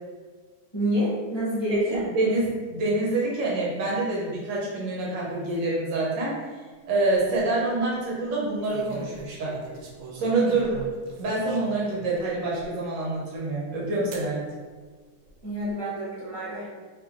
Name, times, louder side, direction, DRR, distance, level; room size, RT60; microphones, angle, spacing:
voice 1, 0.7-2.0 15.4-16.7, equal, 25° left, -11 dB, 0.5 m, -28 dB
voice 2, 1.7-6.4 6.9-9.6 10.1-10.8 11.2-14.4, right 2 dB, 65° right, -5 dB, 1.6 m, -26 dB
sound 1, 7.0-7.4 8.6-12.0 12.6-12.7 14.1-14.3 15.2-15.7, right 4 dB, 85° right, 1.4 m, -42 dB
3.5 x 2.5 x 3.6 m, 1.4 s
omnidirectional pair, 2.2 m